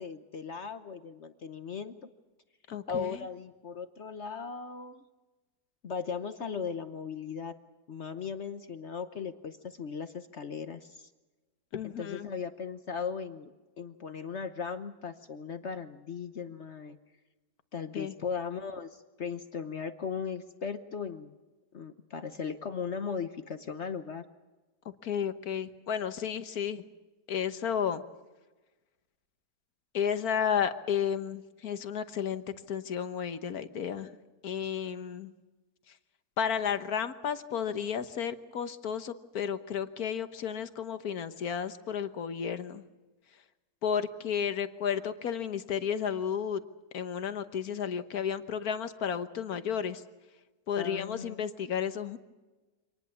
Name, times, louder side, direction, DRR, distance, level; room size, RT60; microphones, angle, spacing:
voice 1, 0.0-2.0 2.9-5.0 5.8-7.5 7.9-11.1 11.8-17.0 17.7-21.3 21.7-24.2 50.8-51.5, left 6 dB, 50° left, 9 dB, 1.1 m, -37 dB
voice 2, 2.7-3.2 11.7-12.3 17.9-18.1 25.0-26.8 27.3-28.0 29.9-34.2 34.4-35.3 36.4-42.8 43.8-46.6 46.9-50.0 50.7-52.2, left 8 dB, 70° left, 10 dB, 1.6 m, -32 dB
26.0 x 19.5 x 7.1 m, 1.2 s
omnidirectional pair, 1.7 m